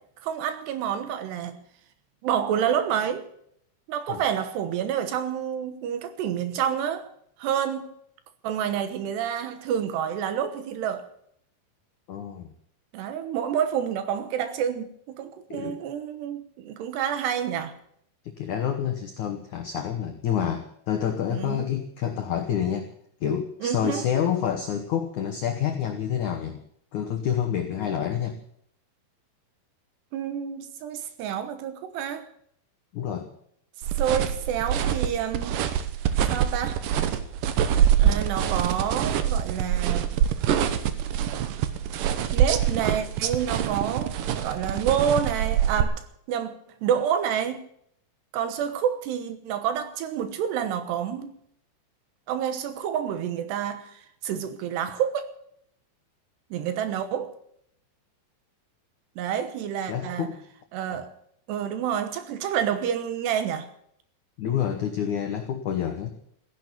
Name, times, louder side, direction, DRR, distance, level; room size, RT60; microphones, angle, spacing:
voice 1, 0.2-1.6 2.2-3.3 3.9-7.1 7.4-7.9 8.4-11.1 12.9-17.7 21.3-21.6 23.6-24.1 30.1-32.3 34.0-35.7 36.3-36.8 38.0-40.2 42.3-44.2 44.4-47.6 48.3-51.3 52.3-55.3 56.5-57.3 59.2-60.3 60.7-61.1 61.5-63.7, right 9 dB, 70° right, 3.0 m, -28 dB
voice 2, 12.1-12.5 15.5-15.8 18.4-22.9 23.2-26.6 26.9-28.4 32.9-33.3 59.9-60.4 60.9-61.0 64.4-66.1, left 9 dB, 90° left, 1.7 m, -28 dB
sound 1, 33.8-45.8, right 10 dB, 85° right, 1.9 m, -25 dB
15.5 x 11.0 x 8.3 m
omnidirectional pair, 5.3 m